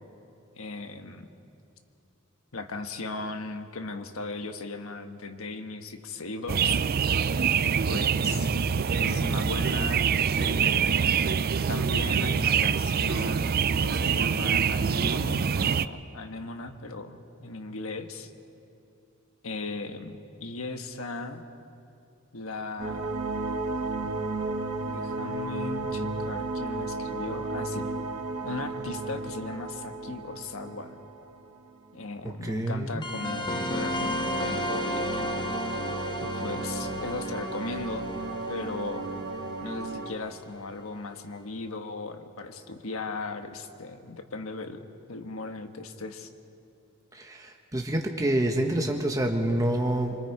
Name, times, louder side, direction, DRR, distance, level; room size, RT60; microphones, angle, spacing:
voice 1, 0.5-1.3 2.5-6.8 7.6-8.5 9.0-10.1 10.4-11.0 11.7-18.3 19.4-21.4 22.3-23.1 24.8-27.9 28.4-31.0 31.9-35.6 36.2-38.1 38.5-39.1 39.6-46.3, left 3 dB, 75° left, 6 dB, 1.3 m, -37 dB
sound 1, 6.5-15.9, right 6 dB, 45° right, 0.4 m, -25 dB
voice 2, 8.4-8.7 32.2-33.0 47.1-50.2, right 1 dB, 15° right, 2 dB, 1.3 m, -28 dB
sound 2, 22.8-31.8 33.0-40.1, right 2 dB, 85° right, 1.9 m, -34 dB
sound 3, 33.0-40.1, left 1 dB, 20° left, 0.9 m, -34 dB
26.0 x 24.0 x 4.8 m, 2.6 s
head